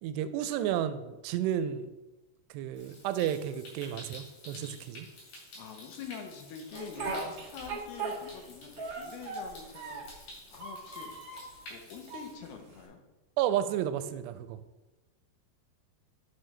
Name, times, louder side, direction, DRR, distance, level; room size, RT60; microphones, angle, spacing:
voice 1, 0.0-1.9 2.5-5.1 13.4-14.6, right 10 dB, 90° right, 12 dB, 2.7 m, -32 dB
Stream, 2.7-12.3, left 1 dB, 60° left, 4.5 m, -51 dB
voice 2, 5.6-10.1 10.5-11.1 11.7-13.0, left 6 dB, 80° left, 4 dB, 2.8 m, -46 dB
Speech, 6.7-8.5 8.8-10.2 10.5-11.5 12.1-12.8, right 3 dB, 70° right, 1.1 m, -38 dB
9.5 x 6.3 x 3.2 m, 1.1 s
omnidirectional pair, 4.8 m